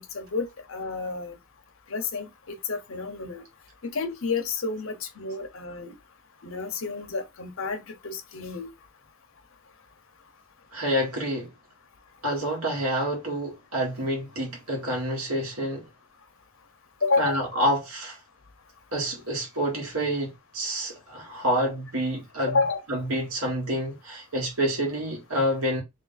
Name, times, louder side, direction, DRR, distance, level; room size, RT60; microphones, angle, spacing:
voice 1, 0.0-1.4 1.9-3.4 3.8-5.9 6.4-8.7 17.0-17.5 22.5-22.8, left 4 dB, 60° left, 0.9 m, -30 dB
voice 2, 10.7-11.5 12.2-15.9 17.2-18.2 18.9-22.6 22.9-25.8, equal, 70° right, 1.9 m, -28 dB
3.3 x 2.7 x 4.0 m
head